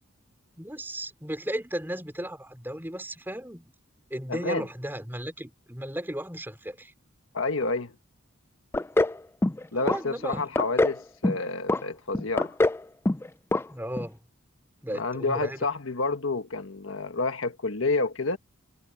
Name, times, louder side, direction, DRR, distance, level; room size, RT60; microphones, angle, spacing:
voice 1, 0.6-3.7 4.1-6.9 9.7-10.4 13.7-14.2 14.8-15.6, equal, 10° right, 4.1 m, -35 dB
voice 2, 4.3-4.6 7.3-7.9 9.7-12.5 14.9-18.4, left 3 dB, 70° left, 1.5 m, -29 dB
sound 1, 8.7-9.2 9.4-10.0 10.3-11.0 11.2-11.8 12.1-12.8 13.0-13.3 13.5-13.6 14.0-14.1, left 2 dB, 10° left, 0.3 m, -23 dB
head